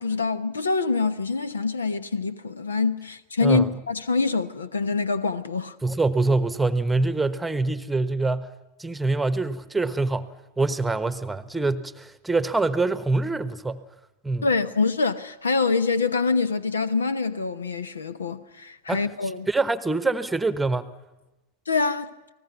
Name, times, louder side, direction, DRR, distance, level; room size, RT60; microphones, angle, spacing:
voice 1, 0.0-5.7 14.4-19.5 21.7-22.1, left 4 dB, 70° left, 1.1 m, -25 dB
voice 2, 3.4-3.8 5.8-8.5 8.8-13.8 14.2-14.5 18.9-19.0 19.5-20.9, right 3 dB, 5° right, 1.1 m, -25 dB
29.5 x 19.5 x 5.9 m
figure-of-eight pair, 90°, 0 cm